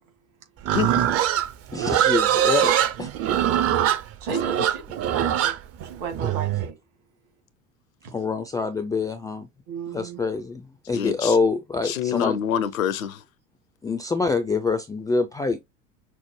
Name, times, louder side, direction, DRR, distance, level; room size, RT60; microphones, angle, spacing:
Livestock farm animals working animals, 0.6-6.7, right 11 dB, 35° right, 0.6 m, -22 dB
voice 1, 0.7-1.0 10.9-11.4 11.8-13.2, left 9 dB, 75° left, 0.7 m, -26 dB
voice 2, 1.7-2.7 3.0-3.1 8.1-9.5 9.9-12.4 13.8-15.6, left 4 dB, 10° left, 0.4 m, -25 dB
voice 3, 4.2-4.8 5.1-5.6 5.8-6.8 9.7-10.2, right 5 dB, 60° right, 2.1 m, -33 dB
5.9 x 2.0 x 3.1 m
figure-of-eight pair, 65°, 41 cm